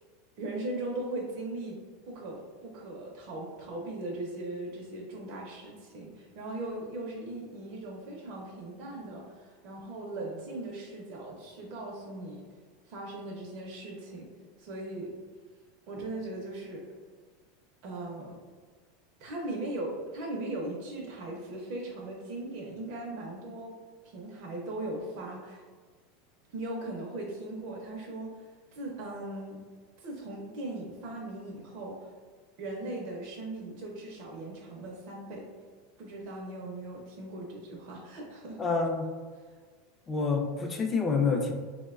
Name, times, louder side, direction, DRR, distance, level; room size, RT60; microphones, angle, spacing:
voice 1, 0.4-12.4 12.9-14.3 14.6-15.2 15.9-16.9 17.8-18.4 19.2-25.6 26.5-29.6 30.0-32.1 32.6-35.5 36.0-38.7, right 2 dB, 55° right, -2 dB, 0.5 m, -39 dB
voice 2, 38.6-39.1 40.1-41.5, left 4 dB, 20° left, 3 dB, 0.4 m, -27 dB
3.7 x 2.1 x 2.3 m, 1.5 s
supercardioid pair, 130°, 0 cm